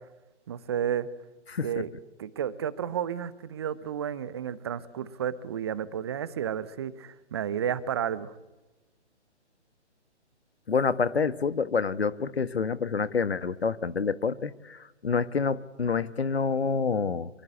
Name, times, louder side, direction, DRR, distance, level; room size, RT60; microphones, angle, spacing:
voice 1, 0.5-1.1 1.6-1.9 2.2-8.3, right 9 dB, 20° right, 17 dB, 0.9 m, -32 dB
voice 2, 1.5-1.8 10.7-17.3, left 5 dB, 60° left, 16 dB, 1.4 m, -27 dB
24.5 x 23.5 x 8.3 m, 1.0 s
figure-of-eight pair, 140°, 35 cm